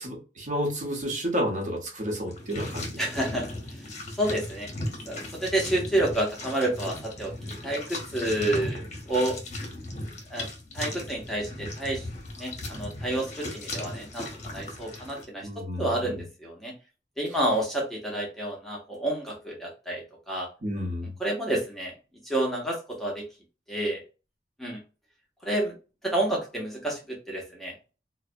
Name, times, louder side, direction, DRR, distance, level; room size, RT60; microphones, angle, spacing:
voice 1, 0.0-3.2 8.3-8.4 15.4-16.2 20.6-21.1, equal, 45° right, 0 dB, 0.9 m, -31 dB
sound 1, 2.3-15.3, left 1 dB, 40° left, 0.7 m, -37 dB
voice 2, 3.0-3.8 4.1-4.7 5.1-9.4 10.3-10.5 10.7-12.1 12.4-15.5 15.8-16.7 17.2-20.5 21.2-21.9 22.2-23.2 23.7-24.0 24.6-24.8 25.4-25.7 26.0-27.7, right 1 dB, ahead, -3 dB, 0.6 m, -29 dB
2.6 x 2.1 x 2.5 m, 0.32 s
head